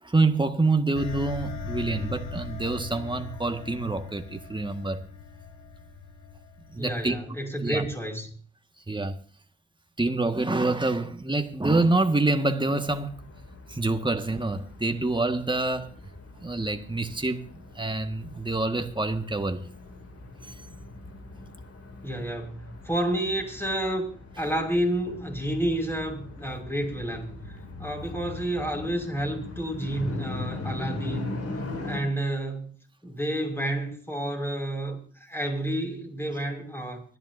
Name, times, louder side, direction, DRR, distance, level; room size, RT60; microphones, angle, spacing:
voice 1, 0.0-5.0 6.7-7.2 7.6-7.9 8.9-9.2 10.0-13.2 13.7-15.9 16.4-19.6 20.4-20.6, right 2 dB, 15° right, 1.8 m, -26 dB
sound 1, 0.9-7.3, left 4 dB, 70° left, 2.0 m, -39 dB
voice 2, 6.8-8.3 22.0-24.1 24.4-31.3 31.8-32.7 33.0-37.0, right 1 dB, 10° left, 5.7 m, -30 dB
sound 2, 12.9-32.0, left 2 dB, 50° left, 3.0 m, -40 dB
24.5 x 10.5 x 2.8 m
hypercardioid pair, 45°, 30 cm